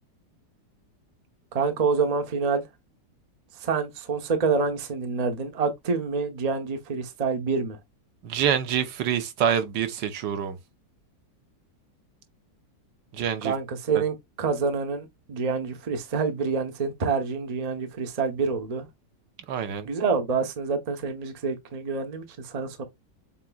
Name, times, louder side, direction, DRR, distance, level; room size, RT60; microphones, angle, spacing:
voice 1, 1.5-2.6 3.6-7.8 13.4-18.9 19.8-22.8, right 5 dB, 35° right, 0.6 m, -27 dB
voice 2, 8.2-10.6 13.1-13.5 13.9-14.0 19.5-19.9, right 8 dB, 80° right, 1.5 m, -26 dB
7.3 x 2.9 x 2.3 m
omnidirectional pair, 1.9 m